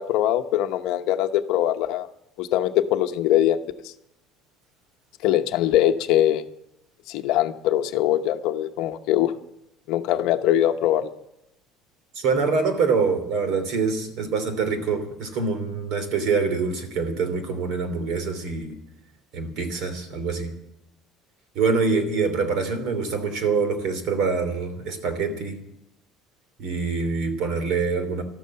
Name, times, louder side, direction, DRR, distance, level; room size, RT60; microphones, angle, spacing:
voice 1, 0.0-2.1 2.4-3.6 5.2-6.4 7.1-9.3 9.9-11.1, left 12 dB, 55° left, 7 dB, 0.9 m, -22 dB
voice 2, 12.1-18.7 19.3-20.5 21.5-25.6 26.6-28.2, right 4 dB, 50° right, 9 dB, 2.9 m, -25 dB
13.0 x 12.5 x 7.7 m, 0.82 s
cardioid pair, 175°, 0 cm